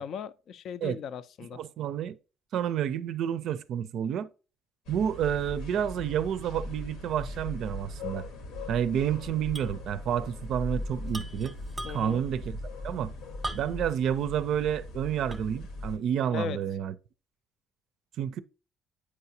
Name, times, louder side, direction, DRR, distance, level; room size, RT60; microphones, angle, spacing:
voice 1, 0.0-1.6 11.8-12.2 16.3-16.6, left 7 dB, 65° left, 0.4 m, -37 dB
voice 2, 1.5-2.2 2.5-4.3 4.9-8.2 8.7-11.5 11.9-12.6 12.8-13.1 13.5-16.9 18.2-18.4, right 9 dB, 70° right, 0.4 m, -29 dB
sound 1, 4.9-16.0, left 2 dB, 90° left, 1.0 m, -39 dB
sound 2, 9.5-9.8 10.1-10.2 11.1-12.3 13.4-14.0 14.5-14.6 15.3-15.7, right 1 dB, 15° right, 0.7 m, -39 dB
8.5 x 4.8 x 2.7 m
supercardioid pair, 85°, 0 cm